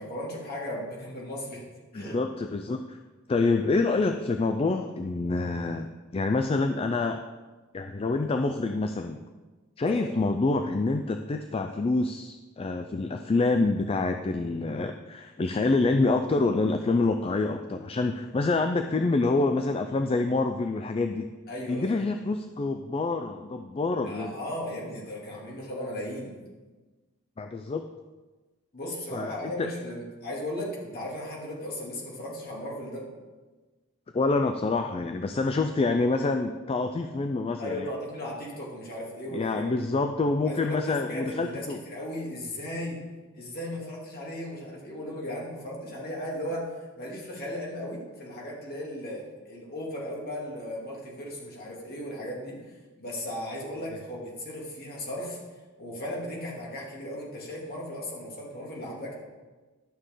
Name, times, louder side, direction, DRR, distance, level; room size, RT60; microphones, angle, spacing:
voice 1, 0.0-1.6 1.9-2.2 9.8-10.1 21.5-22.0 24.0-26.4 28.7-33.0 37.6-39.8 40.4-43.0 43.3-52.5 53.0-55.4 55.8-59.1, left 1 dB, 50° left, -4 dB, 2.4 m, -36 dB
voice 2, 1.9-3.0 3.3-7.2 7.7-9.2 9.8-21.3 21.7-24.4 27.4-27.9 29.1-29.7 34.1-37.9 39.3-41.8, left 3 dB, 25° left, 6 dB, 0.3 m, -27 dB
11.5 x 6.5 x 3.8 m, 1.3 s
head